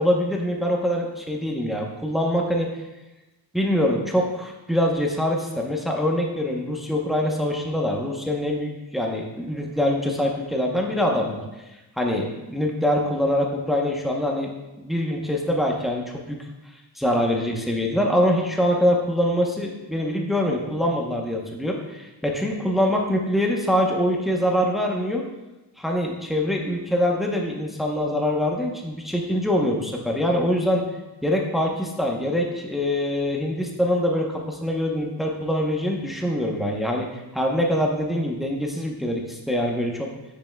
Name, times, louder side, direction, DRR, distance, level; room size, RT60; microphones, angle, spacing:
voice 1, 0.0-2.7 3.5-11.4 12.0-14.5 14.8-16.4 17.0-25.2 25.8-30.8 31.2-37.1 37.3-40.1, equal, ahead, 0 dB, 0.9 m, -24 dB
7.0 x 6.0 x 2.3 m, 1.0 s
cardioid pair, 95°, 43 cm